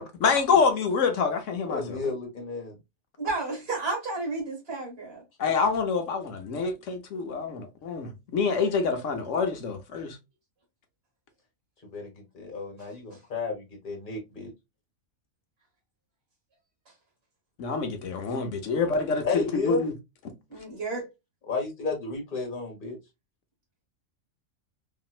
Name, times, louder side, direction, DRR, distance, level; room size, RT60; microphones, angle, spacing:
voice 1, 0.0-2.0 5.4-10.2 17.6-19.9, left 5 dB, 65° left, 1.0 m, -26 dB
voice 2, 1.7-2.8 11.8-14.5 19.2-19.8 21.5-23.0, left 3 dB, 40° left, 1.3 m, -32 dB
voice 3, 3.2-5.2 20.5-21.0, right 3 dB, 50° right, 1.5 m, -32 dB
2.9 x 2.9 x 2.3 m
omnidirectional pair, 1.4 m